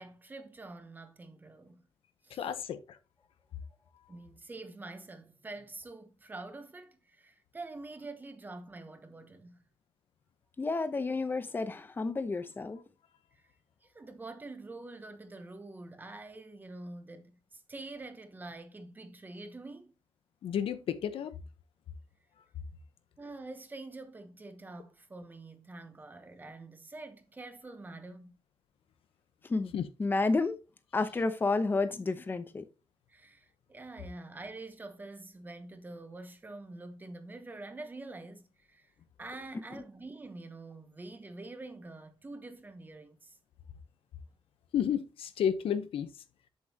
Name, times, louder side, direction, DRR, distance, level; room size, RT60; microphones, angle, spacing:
voice 1, 0.0-1.9 2.2-2.5 4.1-9.6 13.3-13.5 13.8-19.9 23.2-28.4 33.1-38.9 39.2-43.4, right 2 dB, 20° right, 1.0 m, -46 dB
voice 2, 2.3-3.0 20.4-21.3 29.7-29.9 44.7-46.1, left 8 dB, 85° left, 1.0 m, -32 dB
voice 3, 10.6-12.8 29.5-29.7 30.0-30.6 30.9-32.7, left 3 dB, 20° left, 0.8 m, -30 dB
7.6 x 7.4 x 2.9 m
wide cardioid pair, 160°, 9 cm